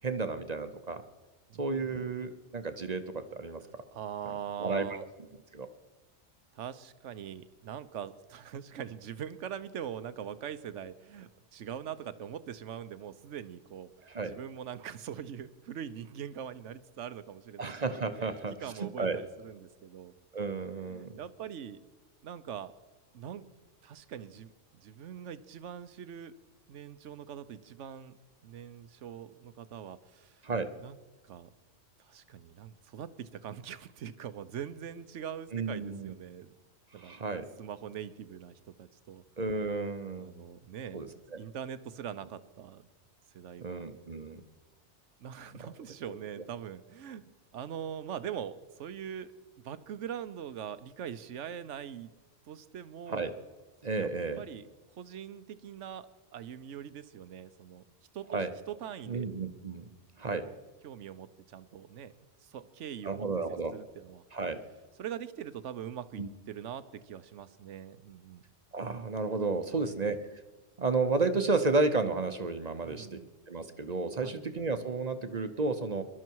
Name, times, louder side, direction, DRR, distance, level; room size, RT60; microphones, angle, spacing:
voice 1, 0.0-1.0 1.6-3.6 4.6-4.9 5.5-5.7 14.1-14.3 17.6-19.2 20.3-21.2 30.4-30.7 35.5-36.1 36.9-37.5 39.4-40.3 40.9-41.1 43.6-44.4 46.1-46.2 53.1-53.3 53.8-54.4 58.3-58.5 59.1-59.8 60.2-60.5 63.0-63.7 64.3-64.6 66.2-66.3 68.7-70.2 70.8-73.2 73.5-76.0, right 3 dB, 40° right, 9 dB, 0.8 m, -32 dB
voice 2, 1.5-2.1 3.9-5.0 6.5-13.9 14.2-17.7 18.2-18.3 18.6-20.1 20.9-21.8 22.2-22.7 23.1-23.4 23.8-26.3 26.7-28.2 28.4-30.4 30.8-31.0 31.2-31.5 32.1-36.5 36.9-37.1 37.6-39.2 40.2-42.9 43.3-43.8 45.2-47.2 47.5-49.3 49.6-52.1 52.5-53.3 54.0-54.1 54.4-54.7 55.0-56.1 56.3-57.8 58.1-58.4 58.7-59.3 60.3-60.5 60.8-63.3 63.7-64.2 65.0-68.4 69.7-70.0 72.8-73.3 74.2-74.4, right 9 dB, 75° right, 14 dB, 1.1 m, -42 dB
22.0 x 12.0 x 4.7 m, 1.2 s
omnidirectional pair, 1.3 m